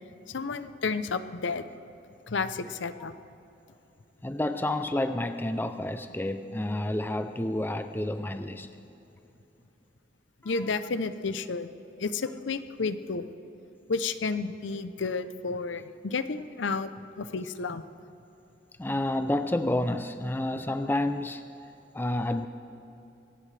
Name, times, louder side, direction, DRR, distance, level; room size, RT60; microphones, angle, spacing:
voice 1, 0.3-1.7 2.3-3.1 10.4-11.7 12.0-13.2 13.9-16.9 17.2-17.8, left 4 dB, 75° left, 12 dB, 0.6 m, -31 dB
voice 2, 4.2-8.7 18.8-21.5 21.9-22.5, left 1 dB, 10° left, 9 dB, 0.5 m, -29 dB
23.0 x 17.5 x 3.3 m, 3.0 s
head